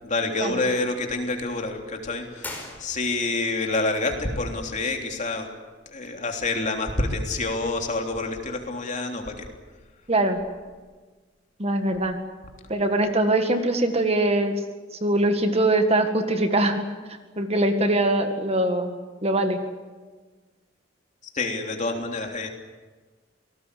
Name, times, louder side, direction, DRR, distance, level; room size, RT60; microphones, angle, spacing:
voice 1, 0.0-5.5 5.9-9.5 21.3-22.5, left 2 dB, 40° left, 3 dB, 3.4 m, -27 dB
sound 1, 2.4-3.4, left 2 dB, 10° left, 4.9 m, -39 dB
voice 2, 10.1-10.4 11.6-12.2 12.7-14.6 15.0-16.8 17.4-19.0 19.2-19.6, right 1 dB, 30° right, 6 dB, 1.9 m, -22 dB
28.0 x 19.0 x 8.5 m, 1.3 s
head